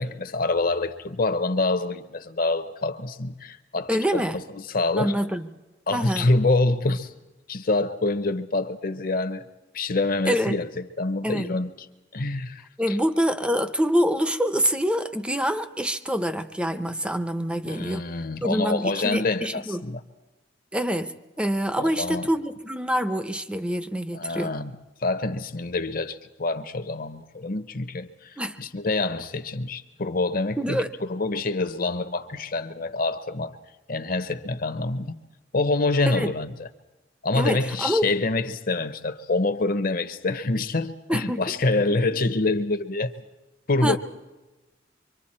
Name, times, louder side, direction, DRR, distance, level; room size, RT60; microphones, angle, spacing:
voice 1, 0.0-5.1 5.9-7.1 7.5-9.5 9.7-11.7 12.1-12.6 12.9-13.0 17.7-20.0 21.8-22.3 24.1-24.7 25.0-33.5 33.9-35.1 35.5-36.7 37.2-43.1 43.7-44.0, left 2 dB, 50° left, 0.9 m, -26 dB
voice 2, 3.9-4.4 5.0-5.5 5.9-6.3 10.3-10.6 11.2-11.5 12.8-18.0 18.4-19.9 20.7-21.1 21.4-24.5 28.4-28.6 30.6-30.9 36.1-36.3 37.3-38.1 41.1-41.5 41.9-42.2 43.8-44.0, equal, 5° right, 0.6 m, -26 dB
25.0 x 24.5 x 4.3 m
head